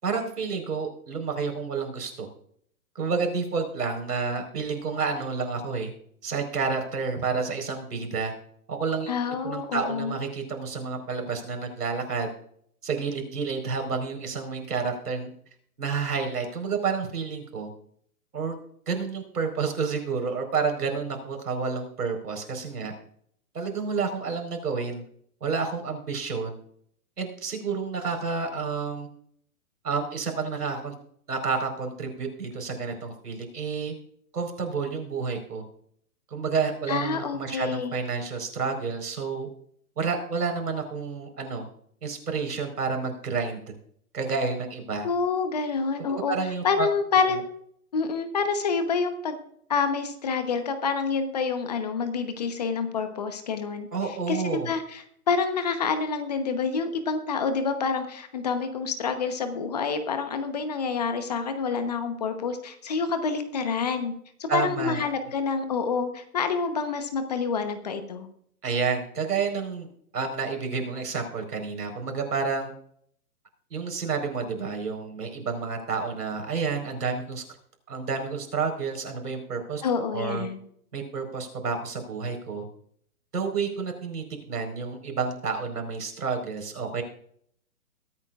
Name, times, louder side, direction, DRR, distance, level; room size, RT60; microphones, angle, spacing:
voice 1, 0.0-2.3 2.9-5.9 6.2-8.3 8.7-9.1 9.4-12.3 12.8-15.3 15.8-17.7 18.3-18.6 18.9-22.9 23.5-25.0 25.4-26.6 27.2-29.1 29.8-30.9 31.3-33.9 34.3-35.6 36.3-39.5 40.0-41.6 42.0-43.6 44.1-45.1 46.1-46.9 47.3-47.4 53.9-54.7 64.5-65.0 68.6-69.9 70.1-72.7 73.7-77.4 77.9-79.8 80.1-80.5 80.9-82.6 83.3-87.0, right 5 dB, 85° right, 4 dB, 4.6 m, -30 dB
voice 2, 9.1-10.1 36.9-37.9 45.0-46.3 46.6-47.4 47.9-49.4 49.7-64.1 64.4-68.3 79.8-80.6, left 5 dB, 25° left, 8 dB, 1.0 m, -27 dB
22.5 x 8.9 x 2.5 m, 0.65 s
hypercardioid pair, 165°, 46 cm